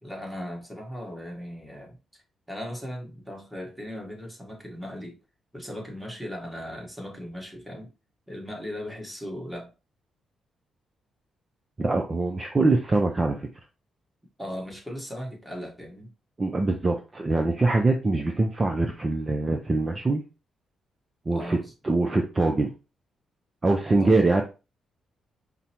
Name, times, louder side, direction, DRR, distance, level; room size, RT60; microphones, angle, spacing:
voice 1, 0.0-2.0 2.5-5.2 5.5-7.9 8.3-9.7 14.4-16.1 21.3-21.7 24.0-24.1, equal, 5° right, 0 dB, 1.4 m, -37 dB
voice 2, 11.8-13.5 16.4-20.2 21.3-21.6 21.8-22.7 23.6-24.4, right 2 dB, 25° right, 3 dB, 0.5 m, -23 dB
5.0 x 2.1 x 2.9 m, 0.30 s
cardioid pair, 90°, 0 cm